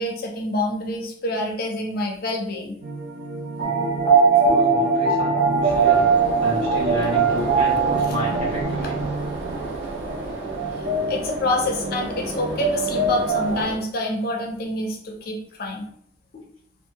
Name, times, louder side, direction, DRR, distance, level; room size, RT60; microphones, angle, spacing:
voice 1, 0.0-2.8 11.1-15.9 16.3-16.4, left 1 dB, 50° left, 1 dB, 0.5 m, -27 dB
sound 1, 2.8-13.6, right 3 dB, 45° right, 0.5 m, -26 dB
sound 2, 3.6-8.6, right 4 dB, 20° left, 0.8 m, -21 dB
voice 2, 4.4-6.1 6.4-9.0, equal, 30° right, -6 dB, 1.1 m, -31 dB
sound 3, 5.7-13.8, right 2 dB, 85° right, 0.8 m, -32 dB
2.6 x 2.4 x 2.7 m, 0.66 s
head